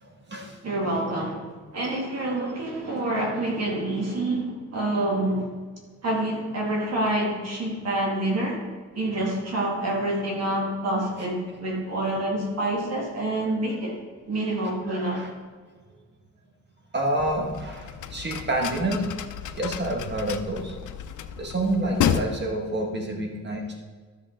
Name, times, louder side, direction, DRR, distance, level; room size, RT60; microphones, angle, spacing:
voice 1, 0.0-0.6 14.9-15.3 16.9-19.1 19.5-20.8 21.4-23.7, right 1 dB, 35° right, 1 dB, 1.7 m, -28 dB
voice 2, 0.6-5.5 6.0-8.6 8.9-13.9 14.3-15.2, right 1 dB, 60° right, -2 dB, 2.1 m, -27 dB
sound 1, 17.2-22.2, left 9 dB, 85° left, 0.6 m, -31 dB
13.0 x 6.4 x 3.8 m, 1.5 s
wide cardioid pair, 150°, 30 cm